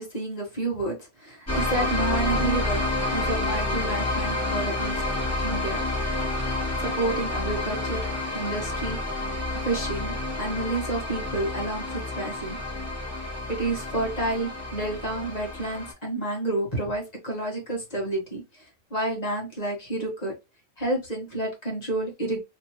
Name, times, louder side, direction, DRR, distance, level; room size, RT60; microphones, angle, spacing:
voice 1, 0.0-2.8 3.1-5.0 5.4-5.8 6.3-6.5 6.8-9.0 9.5-12.6 13.5-20.3 20.8-22.4, right 2 dB, 35° left, -2 dB, 1.6 m, -30 dB
sound 1, 1.5-15.9, left 2 dB, 15° left, 1.7 m, -29 dB
3.4 x 3.1 x 2.8 m, 0.24 s
omnidirectional pair, 1.1 m